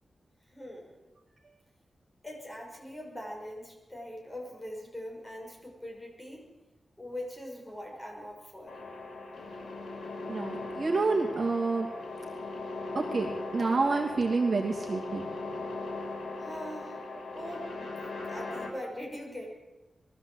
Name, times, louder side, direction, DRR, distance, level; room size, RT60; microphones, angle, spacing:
voice 1, 0.5-1.0 2.2-6.5 7.0-8.8 16.4-17.0 17.3-19.5, equal, 10° left, -2 dB, 6.5 m, -42 dB
sound 1, 8.7-18.7, left 3 dB, 80° left, 6.1 m, -39 dB
voice 2, 10.3-11.9 12.9-15.6, right 3 dB, 45° right, -1 dB, 2.7 m, -28 dB
22.0 x 14.5 x 8.2 m, 1.1 s
wide cardioid pair, 165°, 0 cm